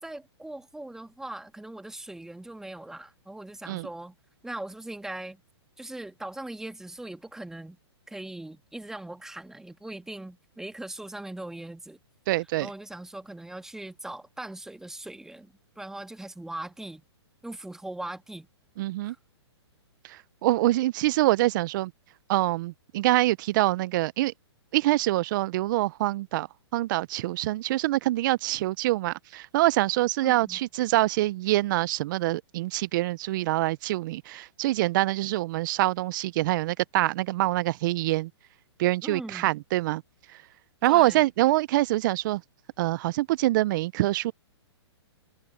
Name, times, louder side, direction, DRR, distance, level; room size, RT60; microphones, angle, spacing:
voice 1, 0.0-4.2 4.4-5.4 5.8-7.8 8.1-12.0 12.6-17.0 17.4-18.5 19.0-19.2 30.2-30.6 39.0-39.5 40.8-41.3, right 1 dB, 5° right, 1.9 m, -40 dB
voice 2, 12.3-12.7 18.8-19.1 20.0-21.9 22.3-24.3 24.7-26.5 26.7-38.3 38.8-40.0 40.8-42.4 42.8-44.3, right 17 dB, 45° right, 0.6 m, -25 dB
hypercardioid pair, 135°, 14 cm